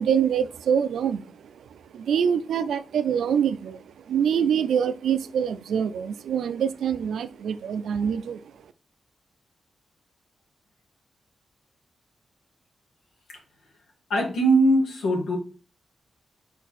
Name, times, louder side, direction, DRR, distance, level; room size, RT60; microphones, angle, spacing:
voice 1, 0.0-8.4, right 8 dB, 90° right, 0.4 m, -25 dB
voice 2, 14.1-15.4, right 1 dB, 90° left, 2.1 m, -21 dB
5.4 x 4.6 x 4.1 m
cardioid pair, 60°, 0 cm